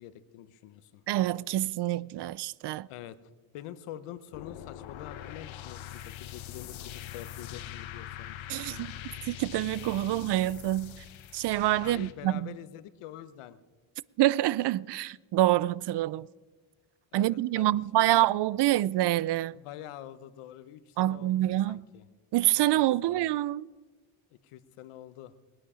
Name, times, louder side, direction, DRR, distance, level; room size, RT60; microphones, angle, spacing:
voice 1, 0.0-1.0 2.9-3.2 3.5-8.4 8.7-8.9 11.8-13.6 17.1-18.2 19.6-21.4 21.7-22.1 22.8-23.2 24.3-25.3, left 12 dB, 85° left, 1.0 m, -46 dB
voice 2, 1.1-2.9 8.5-8.9 9.3-10.9 11.3-12.5 14.2-16.3 17.1-19.6 21.0-21.8 22.3-23.7, right 15 dB, 55° right, 0.5 m, -26 dB
sound 1, 4.3-12.1, left 11 dB, 65° left, 1.2 m, -43 dB
20.5 x 9.5 x 5.0 m
cardioid pair, 85°, 49 cm